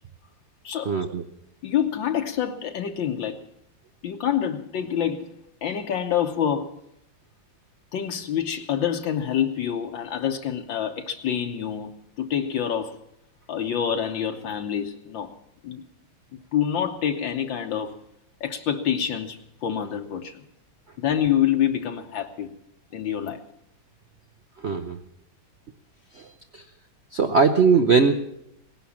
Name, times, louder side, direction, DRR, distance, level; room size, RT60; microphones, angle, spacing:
voice 1, 0.9-1.2 24.6-25.0 26.1-26.6 27.1-28.2, right 5 dB, 80° right, 7 dB, 0.6 m, -20 dB
voice 2, 1.6-3.4 4.0-5.3 5.6-6.8 7.9-11.9 12.2-13.0 13.5-15.3 15.6-15.8 16.5-18.0 18.4-20.4 21.0-22.5 22.9-23.4, left 9 dB, 70° left, 5 dB, 1.6 m, -26 dB
18.0 x 11.0 x 7.1 m, 0.77 s
omnidirectional pair, 2.2 m